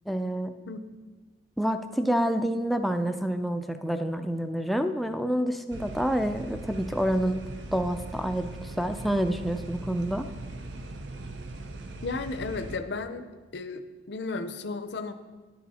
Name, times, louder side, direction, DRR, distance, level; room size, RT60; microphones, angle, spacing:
voice 1, 0.1-0.5 1.6-7.4 7.7-10.3, equal, ahead, 7 dB, 0.4 m, -28 dB
sound 1, 5.7-12.8, right 2 dB, 80° right, 0.7 m, -40 dB
voice 2, 12.0-13.3 13.5-15.1, left 3 dB, 65° left, 9 dB, 0.6 m, -34 dB
10.5 x 8.6 x 4.2 m, 1.3 s
head